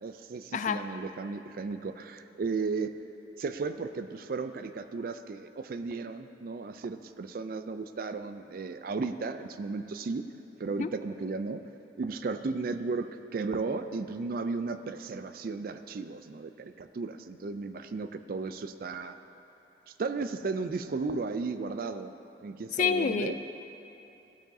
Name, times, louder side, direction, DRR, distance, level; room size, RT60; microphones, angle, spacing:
voice 1, 0.0-3.0 3.4-10.2 10.6-11.6 12.0-19.2 19.9-22.1 22.4-23.4, right 4 dB, 55° right, 10 dB, 0.4 m, -35 dB
voice 2, 22.8-23.4, left 6 dB, 45° left, 10 dB, 0.3 m, -27 dB
14.5 x 8.7 x 2.7 m, 3.0 s
head